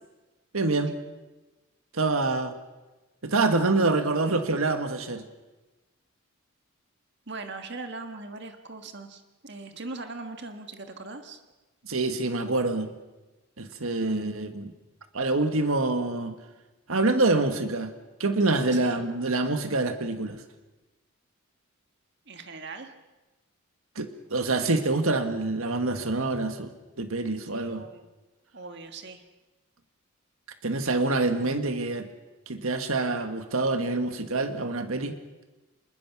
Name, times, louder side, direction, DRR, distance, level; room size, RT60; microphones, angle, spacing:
voice 1, 0.5-1.0 1.9-2.5 3.2-5.3 11.8-12.9 13.6-14.7 15.1-16.4 16.9-17.9 18.2-20.4 23.9-27.8 30.6-32.1 32.5-35.2, right 2 dB, 75° right, 8 dB, 1.6 m, -26 dB
voice 2, 7.3-11.4 14.0-14.3 18.7-19.0 22.3-22.9 27.5-28.1 28.5-29.2, right 3 dB, 50° right, 6 dB, 1.6 m, -40 dB
26.0 x 21.5 x 6.1 m, 1.1 s
head